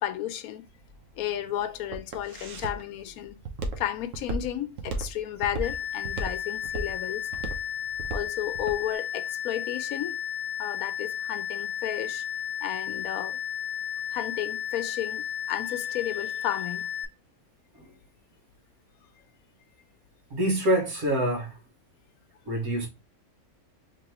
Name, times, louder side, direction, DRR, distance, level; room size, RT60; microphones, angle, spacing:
voice 1, 0.0-0.7 1.2-3.4 3.8-7.3 8.1-10.2 10.6-12.2 12.6-13.4 14.1-16.9, left 12 dB, 80° left, 1.0 m, -33 dB
Walk footsteps, 0.7-8.8, right 2 dB, 65° right, 1.2 m, -35 dB
sound 1, 5.6-17.0, left 9 dB, 25° right, 0.6 m, -33 dB
voice 2, 20.3-21.6 22.5-22.9, right 1 dB, 80° right, 1.9 m, -26 dB
3.8 x 3.3 x 2.9 m
omnidirectional pair, 1.5 m